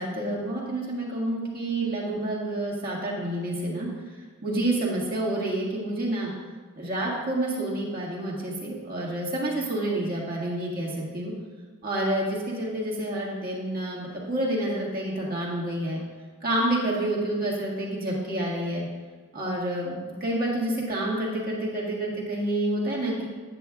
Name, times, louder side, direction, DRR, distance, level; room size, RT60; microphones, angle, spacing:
voice 1, 0.0-3.9 4.4-6.3 6.8-11.3 11.8-16.0 16.4-18.9 19.3-19.9 20.2-23.3, right 1 dB, 40° right, -4 dB, 1.7 m, -28 dB
9.7 x 8.0 x 2.4 m, 1.5 s
head